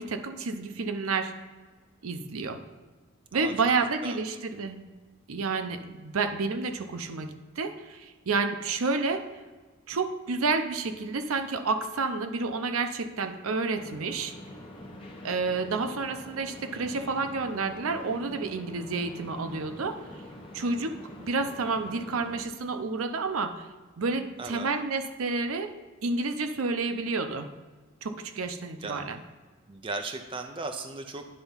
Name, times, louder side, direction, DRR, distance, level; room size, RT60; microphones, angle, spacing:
voice 1, 0.0-1.3 2.0-2.6 3.3-4.8 5.3-9.2 9.9-14.3 15.2-20.0 20.5-23.6 24.0-25.7 26.0-27.5 28.0-29.2, right 4 dB, 85° right, 8 dB, 0.6 m, -30 dB
voice 2, 3.8-4.4 16.7-17.1 24.4-24.7 28.8-29.0 29.7-31.2, right 3 dB, 25° right, 5 dB, 0.4 m, -37 dB
sound 1, 13.8-22.4, left 1 dB, 25° left, 1.0 m, -45 dB
10.0 x 3.5 x 5.5 m, 1.3 s
head